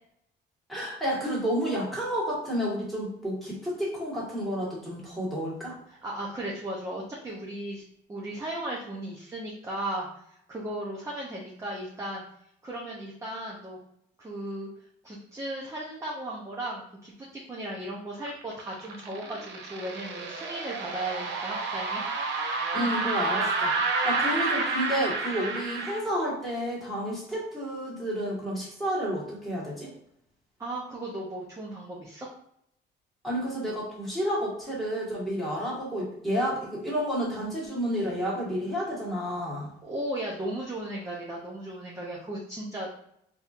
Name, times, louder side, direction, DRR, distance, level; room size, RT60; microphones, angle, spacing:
voice 1, 0.7-5.8 22.7-23.7 24.0-29.9 33.2-39.7, equal, ahead, -6 dB, 1.5 m, -30 dB
voice 2, 5.9-7.8 8.1-12.3 12.6-13.8 14.2-14.7 15.0-22.0 30.6-32.3 39.8-43.0, right 1 dB, 15° right, -3 dB, 0.6 m, -36 dB
sound 1, 18.3-26.0, right 3 dB, 75° right, 0.7 m, -30 dB
4.0 x 2.8 x 2.4 m, 0.71 s
cardioid pair, 135°, 19 cm